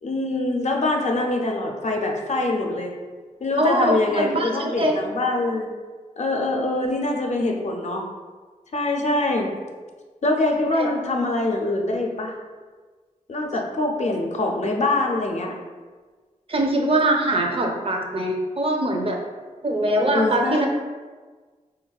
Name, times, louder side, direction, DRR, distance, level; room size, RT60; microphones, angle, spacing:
voice 1, 0.0-2.9 3.4-5.7 6.2-8.1 8.7-9.5 10.2-12.4 13.3-15.5 19.9-20.7, left 2 dB, 60° left, 1 dB, 0.4 m, -24 dB
voice 2, 3.6-4.9 10.8-10.9 14.0-14.2 16.5-19.2 19.6-20.7, right 1 dB, 45° right, 1 dB, 0.4 m, -22 dB
3.9 x 2.2 x 2.3 m, 1.4 s
wide cardioid pair, 85°, 13 cm